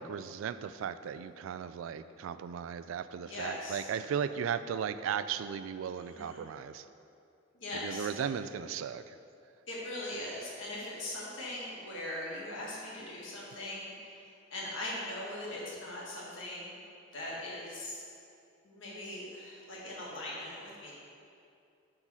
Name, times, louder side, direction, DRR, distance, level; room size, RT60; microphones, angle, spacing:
voice 1, 0.0-6.8 7.8-9.2, right 7 dB, 80° right, 13 dB, 0.3 m, -36 dB
voice 2, 3.2-3.8 6.0-6.4 7.5-8.1 9.7-16.8 17.1-18.0 18.6-20.9, left 1 dB, 65° left, -5 dB, 1.7 m, -40 dB
8.0 x 3.8 x 6.1 m, 2.6 s
head